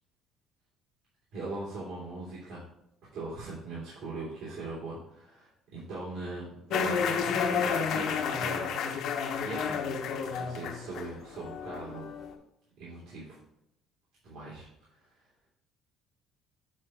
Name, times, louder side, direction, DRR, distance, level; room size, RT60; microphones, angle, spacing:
voice 1, 1.3-2.7 3.1-8.7 9.0-12.1 12.8-13.4 14.2-15.1, right 2 dB, 80° right, -8 dB, 2.7 m, -41 dB
sound 1, 6.7-12.3, left 6 dB, 60° left, 0.9 m, -31 dB
7.7 x 7.4 x 2.3 m, 0.77 s
cardioid pair, 165°, 0 cm